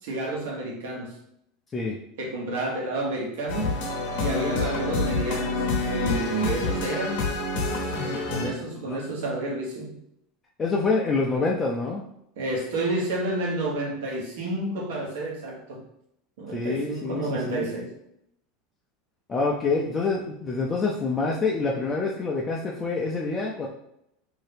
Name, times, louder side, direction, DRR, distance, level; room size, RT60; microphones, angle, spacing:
voice 1, 0.0-1.2 2.2-3.7 4.2-7.2 8.0-10.0 12.4-15.8 16.4-17.9, right 2 dB, 80° right, -1 dB, 1.0 m, -30 dB
sound 1, 3.5-8.5, left 3 dB, 75° left, 0.8 m, -27 dB
voice 2, 10.6-12.0 16.5-17.7 19.3-23.7, left 3 dB, 25° left, -3 dB, 0.5 m, -26 dB
2.8 x 2.7 x 3.4 m, 0.78 s
supercardioid pair, 120°, 0 cm